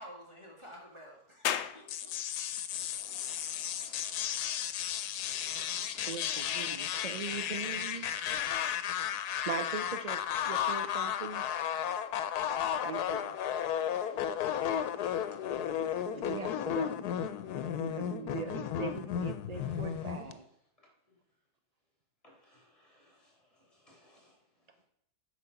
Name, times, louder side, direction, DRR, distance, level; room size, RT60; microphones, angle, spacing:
voice 1, 0.0-2.2, equal, 20° right, -2 dB, 2.2 m, -51 dB
sound 1, 1.4-14.6, left 10 dB, 70° left, 0.6 m, -46 dB
sound 2, 1.9-20.3, left 9 dB, 85° left, 1.2 m, -34 dB
voice 2, 2.7-7.1 13.4-15.5 16.0-16.7 19.6-20.4 20.8-21.4 22.2-24.8, left 1 dB, 20° left, -2 dB, 3.4 m, -61 dB
voice 3, 6.1-8.3 9.4-11.5 11.8-12.1 12.8-13.4 15.8-15.9 16.1-17.0 17.8-20.4, right 5 dB, 90° right, 8 dB, 0.3 m, -41 dB
8.4 x 4.9 x 6.9 m, 0.76 s
omnidirectional pair, 1.6 m